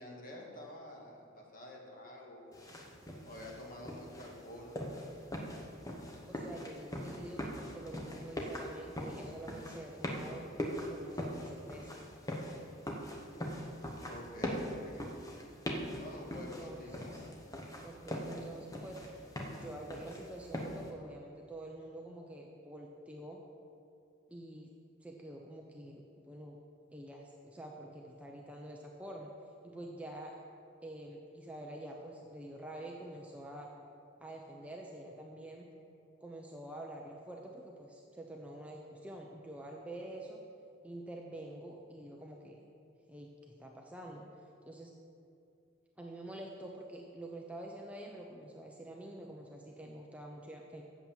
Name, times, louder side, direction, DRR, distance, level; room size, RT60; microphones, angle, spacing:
voice 1, 0.0-2.6 3.3-4.7 14.1-15.0 16.0-17.2, left 1 dB, 40° left, -2 dB, 1.9 m, -48 dB
sound 1, 2.5-20.9, equal, 15° left, 1.0 m, -42 dB
voice 2, 6.3-7.4 7.7-10.4 10.9-11.9 16.3-17.2 17.8-19.0 19.6-23.4 24.3-24.7 25.0-26.6 26.9-29.3 29.6-30.4 30.8-33.7 34.2-35.7 36.2-40.4 40.8-42.6 43.1-44.2 44.7-44.9 46.0-50.8, right 1 dB, 5° right, 0 dB, 0.6 m, -47 dB
8.3 x 7.1 x 7.3 m, 2.5 s
head